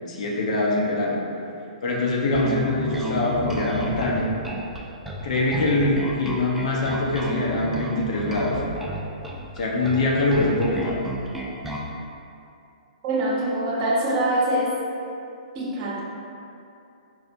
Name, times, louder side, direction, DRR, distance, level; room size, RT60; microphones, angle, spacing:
voice 1, 0.1-1.2 1.8-4.3 5.2-8.6 9.6-10.9, left 2 dB, 65° left, -2 dB, 0.7 m, -23 dB
Bass guitar, 2.3-11.9, equal, 5° right, 0.3 m, -32 dB
voice 2, 13.0-14.7 15.5-16.0, right 1 dB, 40° right, -4 dB, 0.7 m, -24 dB
4.7 x 2.1 x 2.6 m, 2.6 s
hypercardioid pair, 130°, 4 cm